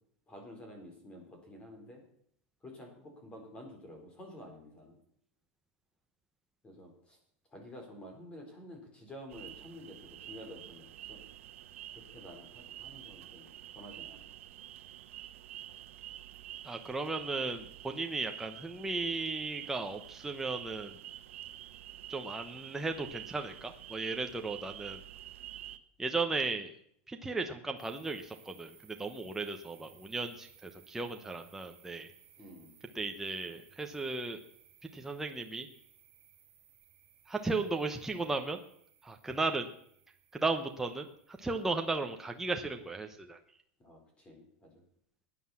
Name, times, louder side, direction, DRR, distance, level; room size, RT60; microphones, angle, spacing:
voice 1, 0.3-2.0 2.6-5.0 6.6-7.2 7.5-11.2 11.9-13.5 13.7-14.3 32.4-32.7 43.8-44.8, left 1 dB, 15° left, 2 dB, 4.4 m, -50 dB
sound 1, 9.3-25.8, right 13 dB, 85° right, 1.1 m, -48 dB
voice 2, 16.6-20.9 22.1-25.0 26.0-26.7 27.1-32.1 32.9-34.4 34.9-35.7 37.3-38.6 39.0-39.7 40.3-41.1 41.4-43.4, right 3 dB, 5° right, 4 dB, 1.0 m, -35 dB
sound 2, 27.8-42.8, right 9 dB, 35° right, 4.8 m, -62 dB
15.5 x 9.8 x 7.3 m, 0.67 s
supercardioid pair, 155°, 7 cm